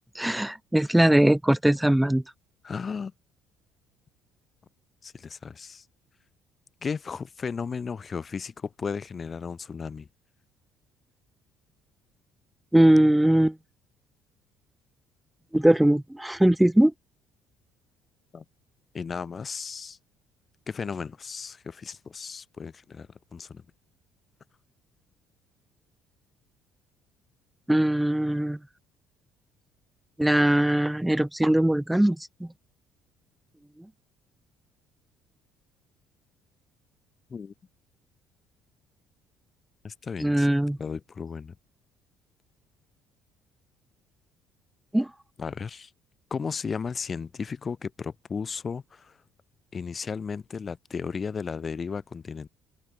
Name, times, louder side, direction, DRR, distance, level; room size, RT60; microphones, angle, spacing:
voice 1, 0.1-2.2 12.7-13.6 15.5-16.9 27.7-28.6 30.2-32.5 40.2-40.8 44.9-45.1, right 1 dB, 5° right, 1.4 m, -21 dB
voice 2, 2.6-3.1 5.0-5.8 6.8-10.1 18.3-18.4 18.9-20.0 20.7-23.6 37.3-37.5 39.8-40.5 40.8-41.5 45.4-45.9 46.3-49.2 49.7-52.5, left 5 dB, 35° left, 3.0 m, -35 dB
hypercardioid pair, 60°, 0 cm